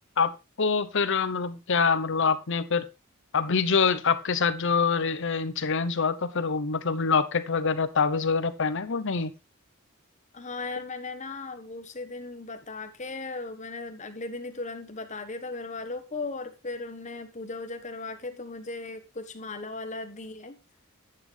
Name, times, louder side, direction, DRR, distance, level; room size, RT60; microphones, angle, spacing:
voice 1, 0.6-2.8 3.3-9.3, left 5 dB, 65° left, 0.9 m, -25 dB
voice 2, 10.3-20.6, left 3 dB, 35° left, 1.4 m, -37 dB
11.0 x 8.6 x 3.4 m
head